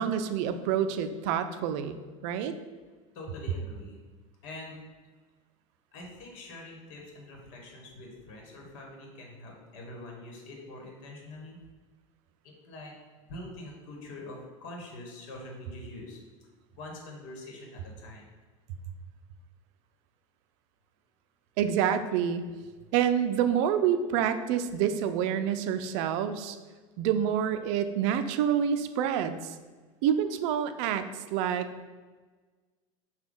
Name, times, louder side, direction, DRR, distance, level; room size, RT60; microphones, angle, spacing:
voice 1, 0.0-2.5 21.6-22.4 22.9-26.6 27.0-29.5 30.0-31.0 31.3-31.9, right 9 dB, 60° right, 10 dB, 0.4 m, -27 dB
voice 2, 3.1-4.0 4.4-4.8 5.9-11.6 12.4-12.9 13.3-16.2 16.7-18.2, left 2 dB, 65° left, 0 dB, 1.2 m, -44 dB
5.8 x 2.3 x 3.7 m, 1.3 s
hypercardioid pair, 90°, 17 cm